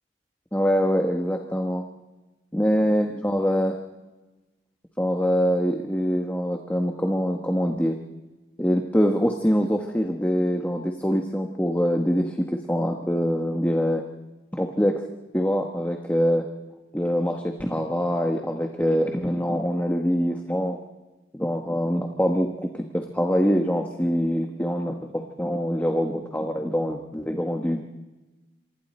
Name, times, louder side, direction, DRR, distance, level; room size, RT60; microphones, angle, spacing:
voice 1, 0.5-1.8 2.5-3.8 5.0-8.0 8.6-14.0 14.5-15.0 15.3-16.5 16.9-20.8 21.3-27.8, equal, 10° left, 3 dB, 1.2 m, -24 dB
27.0 x 24.5 x 4.4 m, 1.1 s
head